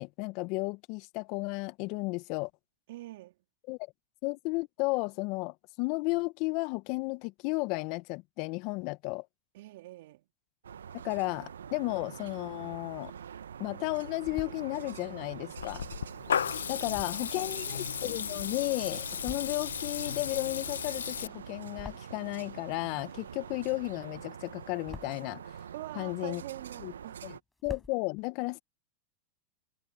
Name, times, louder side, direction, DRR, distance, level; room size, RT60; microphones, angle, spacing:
voice 1, 0.0-2.5 3.7-3.8 4.2-9.2 10.9-13.1 13.6-15.8 16.7-25.5 25.9-26.4 26.8-26.9 27.2-27.3 27.6-28.6, left 26 dB, 55° left, 1.4 m, -34 dB
voice 2, 2.9-3.3 9.5-10.2 16.9-17.6 25.7-27.3, right 17 dB, 65° right, 3.5 m, -45 dB
sound 1, 10.6-27.4, right 8 dB, 85° right, 1.1 m, -45 dB
sound 2, 12.8-13.4 13.9-14.6 15.3-18.6 19.0-19.8 20.1-22.5 22.8-24.0 24.4-25.3 25.9-26.9 27.2-27.3 27.5-28.0, left 2 dB, 10° left, 6.8 m, -49 dB
Water tap faucet / Liquid, 15.6-21.3, left 8 dB, 85° left, 1.3 m, -35 dB
hypercardioid pair, 95°, 0 cm